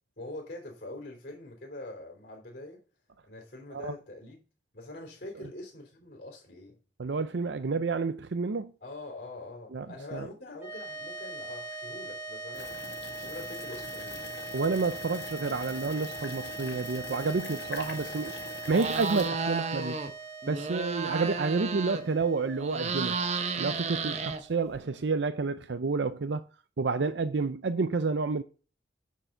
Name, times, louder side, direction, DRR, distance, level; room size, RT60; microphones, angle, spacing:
voice 1, 0.2-2.8 3.2-4.4 4.7-6.8 8.8-12.8 13.1-14.2, left 2 dB, 50° left, 3.3 m, -44 dB
voice 2, 7.0-8.7 9.7-9.9 10.1-10.3 14.5-18.4 18.7-20.0 20.5-23.2 23.6-26.4 26.8-28.4, right 4 dB, 80° right, 0.6 m, -29 dB
sound 1, 10.5-25.0, right 3 dB, 15° right, 2.8 m, -42 dB
sound 2, 12.5-19.3, left 4 dB, 70° left, 2.0 m, -43 dB
sound 3, 18.7-20.1 20.4-22.2 22.5-24.8, right 4 dB, 40° right, 1.0 m, -32 dB
10.0 x 4.7 x 6.5 m
head